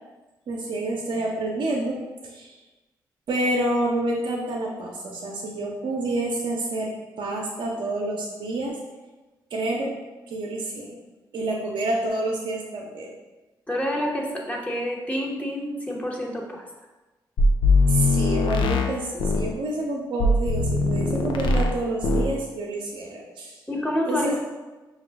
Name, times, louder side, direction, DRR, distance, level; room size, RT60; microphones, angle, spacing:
voice 1, 0.5-2.6 3.3-8.8 9.5-9.9 10.3-11.0 11.3-13.1 17.9-23.6 24.1-24.4, right 2 dB, 65° right, -1 dB, 0.6 m, -28 dB
voice 2, 13.7-16.6 23.7-24.4, left 1 dB, 15° left, -2 dB, 0.9 m, -28 dB
sound 1, 17.4-19.5 20.2-21.8 22.0-22.4, left 2 dB, 65° left, 0.4 m, -21 dB
4.9 x 2.3 x 3.4 m, 1.2 s
hypercardioid pair, 45°, 9 cm